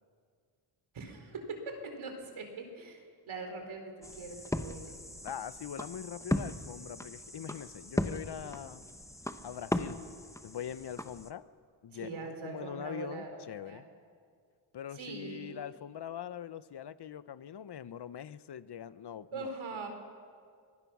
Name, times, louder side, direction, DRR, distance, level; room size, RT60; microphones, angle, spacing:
voice 1, 0.9-5.0 11.9-13.8 14.9-15.6 19.3-19.9, right 3 dB, 75° right, 4 dB, 4.2 m, -42 dB
sound 1, 4.0-11.3, left 1 dB, 5° left, 1.1 m, -38 dB
voice 2, 5.2-8.8 9.4-10.0 10.4-11.5 11.8-13.8 14.7-19.5, left 9 dB, 55° left, 15 dB, 0.8 m, -43 dB
25.0 x 18.5 x 6.1 m, 2.1 s
cardioid pair, 70°, 47 cm